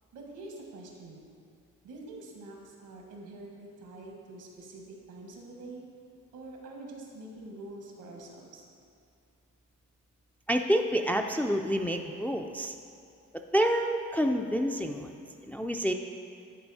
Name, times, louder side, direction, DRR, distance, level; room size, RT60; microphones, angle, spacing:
voice 1, 0.1-1.2 1.8-5.8 6.3-8.7, right 2 dB, 80° right, 0 dB, 1.5 m, -46 dB
voice 2, 10.5-12.7 13.5-15.1 15.4-15.9, equal, 5° left, 4 dB, 0.3 m, -28 dB
10.5 x 4.2 x 4.1 m, 2.6 s
cardioid pair, 90°, 30 cm